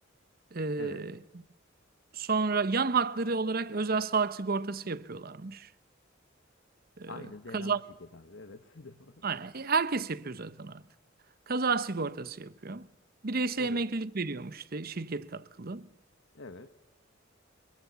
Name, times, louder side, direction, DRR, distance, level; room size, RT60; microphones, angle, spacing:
voice 1, 0.5-1.2 2.1-5.7 7.0-7.1 7.5-7.8 9.2-10.8 11.5-12.9 13.2-15.9, right 4 dB, 50° right, 0.9 m, -31 dB
voice 2, 7.1-9.2 13.6-13.8 16.3-16.7, left 3 dB, 65° left, 1.4 m, -46 dB
25.5 x 22.5 x 7.0 m
head